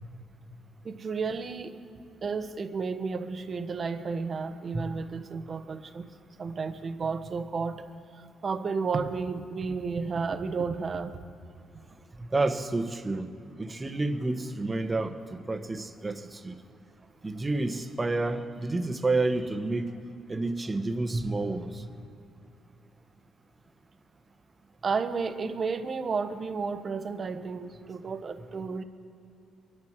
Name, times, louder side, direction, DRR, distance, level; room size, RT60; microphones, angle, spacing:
voice 1, 0.8-1.8 2.2-6.1 6.4-7.9 8.2-11.2 24.8-28.8, right 5 dB, 45° right, 8 dB, 1.2 m, -32 dB
voice 2, 12.2-13.3 13.6-16.5 17.2-19.9 20.3-21.9, right 2 dB, 25° right, 7 dB, 1.2 m, -29 dB
24.0 x 11.0 x 4.7 m, 2.7 s
cardioid pair, 90°, 0 cm